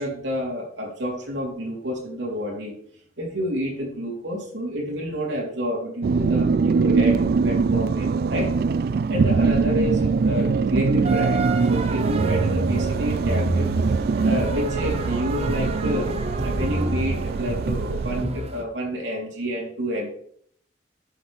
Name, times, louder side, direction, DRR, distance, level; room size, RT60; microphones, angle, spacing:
voice 1, 0.0-2.7 3.2-8.5 9.1-13.7 14.2-20.1, equal, 85° right, -1 dB, 3.3 m, -29 dB
sound 1, 6.0-18.2, right 4 dB, 55° right, 0.3 m, -23 dB
sound 2, 11.0-18.6, equal, 35° right, 1.0 m, -30 dB
10.5 x 7.2 x 3.4 m, 0.62 s
head